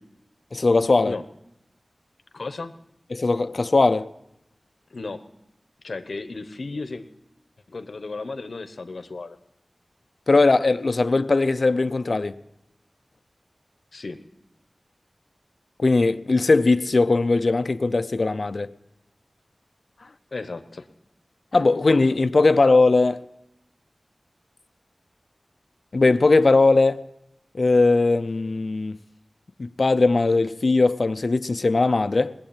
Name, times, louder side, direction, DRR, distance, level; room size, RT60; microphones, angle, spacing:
voice 1, 0.5-1.2 3.1-4.1 10.3-12.4 15.8-18.7 21.5-23.2 25.9-27.0 27.5-29.0 29.6-32.3, left 3 dB, 65° left, 0.5 m, -19 dB
voice 2, 2.3-2.7 4.9-5.2 5.8-7.0 7.7-9.4 13.9-14.2 20.3-20.9, left 3 dB, 85° left, 1.0 m, -34 dB
20.0 x 7.6 x 8.9 m
wide cardioid pair, 55°, 0 cm